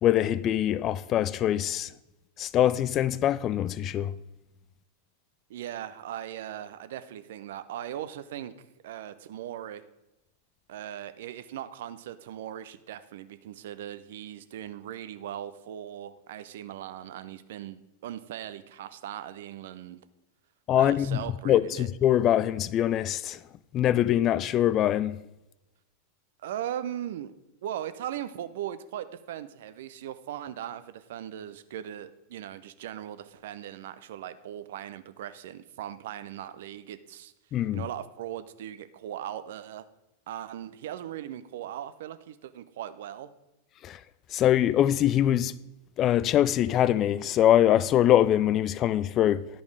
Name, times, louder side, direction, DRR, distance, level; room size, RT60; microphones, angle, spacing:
voice 1, 0.0-1.9 2.4-4.1 20.7-23.4 23.7-25.2 37.5-37.8 43.8-44.0 44.3-45.5 46.0-49.5, left 11 dB, 30° left, 0.3 m, -23 dB
voice 2, 5.5-8.5 8.8-9.8 10.7-20.0 20.8-21.9 26.4-27.3 27.6-37.3 37.7-39.8 40.3-43.3, right 11 dB, 55° right, 0.5 m, -39 dB
11.0 x 5.1 x 4.8 m
figure-of-eight pair, 90°, 0 cm